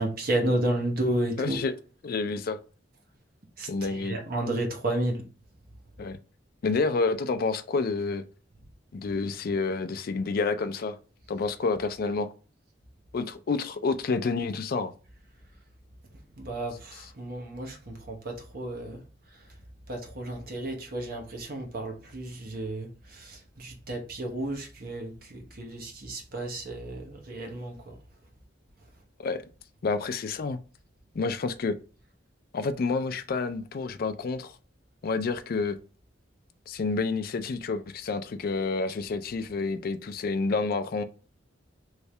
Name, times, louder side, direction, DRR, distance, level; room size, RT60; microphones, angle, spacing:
voice 1, 0.0-1.6 3.6-5.2 16.1-19.6 19.9-28.0 28.8-28.9, right 1 dB, 50° right, 0.9 m, -32 dB
voice 2, 1.4-1.7 2.0-2.6 3.7-4.2 6.0-6.2 6.6-8.2 8.9-11.0 11.3-12.3 13.1-14.9 29.2-29.4 29.8-30.6 31.1-31.7 32.5-34.6 35.0-35.8 36.7-41.0, left 4 dB, 50° left, 0.4 m, -29 dB
3.2 x 2.7 x 3.2 m
head